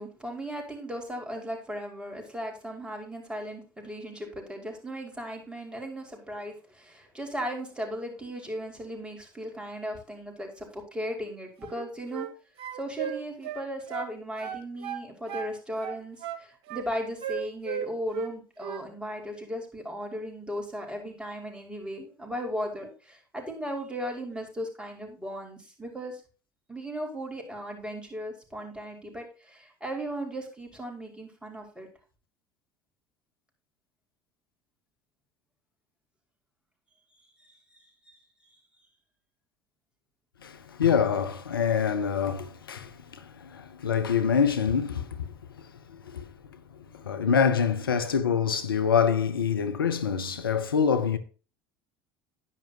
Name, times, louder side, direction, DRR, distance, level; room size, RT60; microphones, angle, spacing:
voice 1, 0.0-12.3 12.7-26.2 26.7-31.9 37.4-38.2 46.9-47.3, equal, 10° right, 5.4 m, -37 dB
sound 1, 11.6-12.3 12.6-14.1 14.4-15.5 15.8-16.8 17.2-18.3 18.6-18.8, right 10 dB, 55° right, 2.1 m, -36 dB
voice 2, 40.4-45.3 45.6-45.7 45.9-46.2 46.9-51.2, left 7 dB, 85° left, 0.8 m, -26 dB
11.0 x 10.5 x 2.9 m
hypercardioid pair, 70°, 12 cm